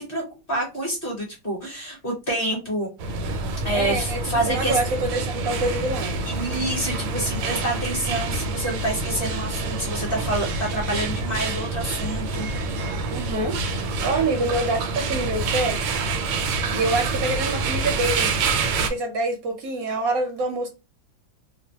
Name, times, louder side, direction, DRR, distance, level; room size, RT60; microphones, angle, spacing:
voice 1, 0.0-2.9 3.6-4.8 6.2-12.5, right 1 dB, 35° left, 1.0 m, -28 dB
sound 1, 3.0-18.9, right 3 dB, 85° right, 1.3 m, -27 dB
voice 2, 3.7-6.2 13.1-15.8 16.7-18.4 18.9-20.7, right 2 dB, 65° right, 0.9 m, -26 dB
3.0 x 2.1 x 2.7 m
omnidirectional pair, 2.1 m